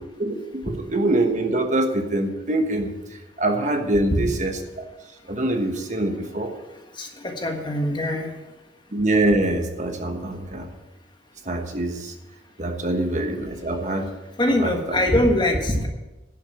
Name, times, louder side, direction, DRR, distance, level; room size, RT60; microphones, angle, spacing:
voice 1, 0.6-2.9 3.4-4.8 5.3-6.5 8.9-10.7 11.5-12.1 12.6-14.1 14.6-15.0, right 2 dB, 40° right, 4 dB, 1.3 m, -24 dB
voice 2, 7.0-8.3 14.4-15.9, left 1 dB, 25° left, 3 dB, 1.5 m, -22 dB
11.5 x 6.7 x 8.6 m, 1.1 s
head